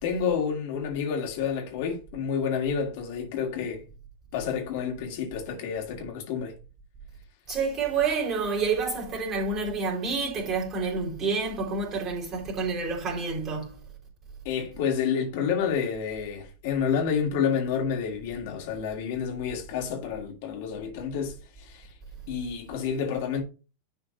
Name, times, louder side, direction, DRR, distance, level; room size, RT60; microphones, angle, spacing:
voice 1, 0.0-3.8 4.3-6.6 14.4-21.9 22.3-23.4, left 7 dB, 50° left, 2.4 m, -29 dB
voice 2, 7.5-13.8, right 4 dB, 25° right, 3.7 m, -28 dB
10.5 x 4.4 x 4.3 m
figure-of-eight pair, 90°, 0 cm